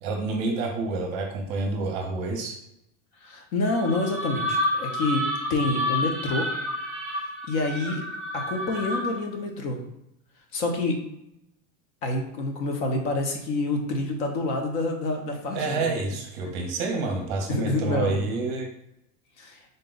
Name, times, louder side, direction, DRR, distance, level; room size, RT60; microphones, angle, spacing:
voice 1, 0.0-2.5 15.5-18.7, right 3 dB, 40° right, 2 dB, 0.6 m, -28 dB
voice 2, 3.2-6.5 7.5-8.0 8.3-9.8 10.5-11.0 12.0-15.9 17.5-18.2 19.4-19.6, left 2 dB, 50° left, 3 dB, 0.7 m, -27 dB
sound 1, 3.6-9.3, left 1 dB, ahead, 0.7 m, -29 dB
3.9 x 2.1 x 3.8 m, 0.83 s
supercardioid pair, 170°, 43 cm